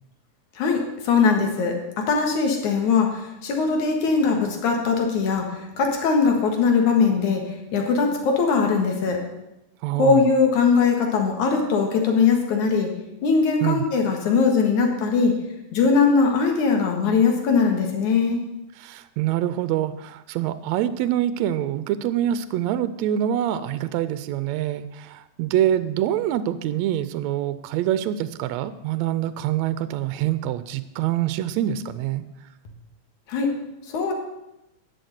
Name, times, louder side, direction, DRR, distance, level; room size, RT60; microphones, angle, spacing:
voice 1, 0.6-5.5 5.8-7.4 7.7-9.2 9.9-12.9 13.2-15.3 15.7-18.4 33.3-33.5 33.9-34.1, left 5 dB, 85° left, 2 dB, 3.1 m, -20 dB
voice 2, 9.8-10.3 13.6-13.8 18.8-32.2, right 11 dB, 80° right, 13 dB, 1.8 m, -25 dB
11.0 x 6.6 x 8.0 m, 0.91 s
omnidirectional pair, 3.3 m